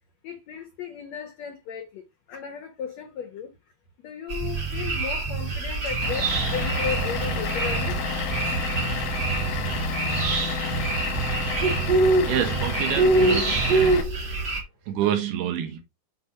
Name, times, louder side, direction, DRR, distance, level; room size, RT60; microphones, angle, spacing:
voice 1, 0.2-3.5 4.0-8.0, left 7 dB, 80° left, 1.5 m, -35 dB
sound 1, 4.3-14.6, right 2 dB, 35° right, 1.9 m, -25 dB
Bass guitar, 4.4-5.6 5.9-8.0 8.3-10.4 10.7-12.8 13.1-14.0, right 7 dB, 65° right, 2.0 m, -33 dB
Vehicle / Engine, 6.0-14.0, left 5 dB, 65° left, 1.5 m, -31 dB
voice 2, 12.2-14.1 14.4-14.5 14.9-15.8, right 9 dB, 80° right, 3.4 m, -28 dB
7.4 x 3.5 x 5.6 m
omnidirectional pair, 4.6 m